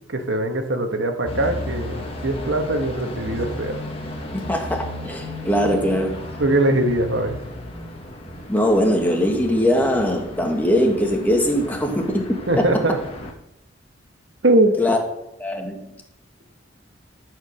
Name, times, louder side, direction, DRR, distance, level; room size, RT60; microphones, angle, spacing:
voice 1, 0.1-1.9 2.2-3.7 6.4-7.4 12.5-13.0 14.4-14.7, right 1 dB, 70° right, 1.5 m, -21 dB
sound 1, 1.3-13.3, left 1 dB, 30° left, 1.5 m, -34 dB
voice 2, 4.3-6.2 8.5-12.7 14.8-15.0 15.4-15.9, equal, 10° left, 1.5 m, -21 dB
12.5 x 5.1 x 6.4 m
head